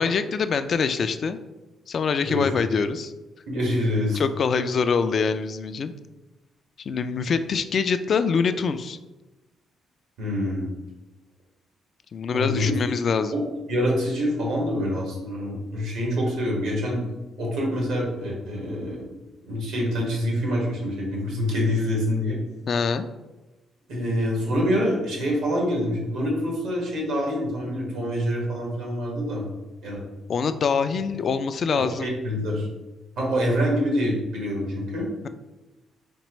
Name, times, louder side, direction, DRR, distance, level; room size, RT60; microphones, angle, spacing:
voice 1, 0.0-1.4 1.9-3.1 4.1-5.9 6.9-9.0 12.1-13.3 22.7-23.1 30.3-32.1, left 5 dB, 50° left, 10 dB, 0.3 m, -24 dB
voice 2, 3.5-4.2 10.2-10.7 12.3-12.7 13.3-13.4 13.7-17.0 17.4-19.1 19.5-22.4 23.9-29.4 29.8-30.0 31.7-32.7 33.2-35.1, equal, 90° right, -2 dB, 1.5 m, -26 dB
4.4 x 4.0 x 3.0 m, 1.1 s
cardioid pair, 90°, 0 cm